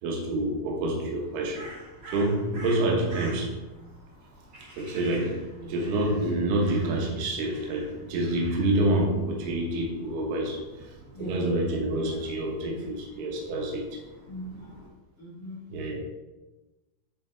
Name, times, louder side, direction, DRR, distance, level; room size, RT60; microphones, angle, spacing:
voice 1, 0.0-1.7 2.1-3.8 4.8-10.6 11.2-14.0 15.7-16.0, right 1 dB, 80° right, 0 dB, 3.1 m, -27 dB
Crow, 1.1-14.9, right 1 dB, 50° right, 0.9 m, -48 dB
voice 2, 11.1-11.6 11.9-12.4 13.1-13.2 14.1-14.8 15.2-15.7, right 1 dB, 75° left, -8 dB, 0.8 m, -42 dB
9.2 x 4.8 x 3.4 m, 1.1 s
omnidirectional pair, 4.6 m